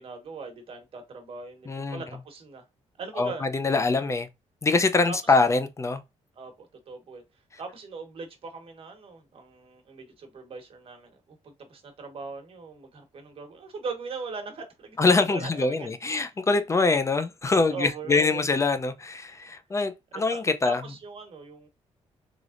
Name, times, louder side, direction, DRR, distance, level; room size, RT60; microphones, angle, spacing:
voice 1, 0.0-2.6 3.0-3.5 5.1-5.3 6.4-7.2 7.6-16.3 17.6-18.4 20.1-21.7, right 4 dB, 50° right, 1.3 m, -40 dB
voice 2, 1.7-2.0 3.2-4.3 4.6-6.0 15.0-20.8, left 3 dB, 25° left, 0.5 m, -24 dB
3.6 x 3.4 x 2.5 m
cardioid pair, 110°, 12 cm